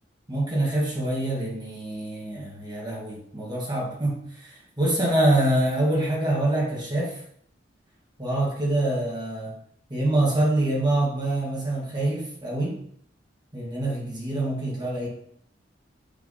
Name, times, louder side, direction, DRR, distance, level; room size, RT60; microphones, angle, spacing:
voice 1, 0.3-7.2 8.2-9.5 9.9-12.8 13.5-15.1, right 1 dB, 25° right, -5 dB, 2.0 m, -25 dB
6.9 x 3.7 x 4.0 m, 0.64 s
head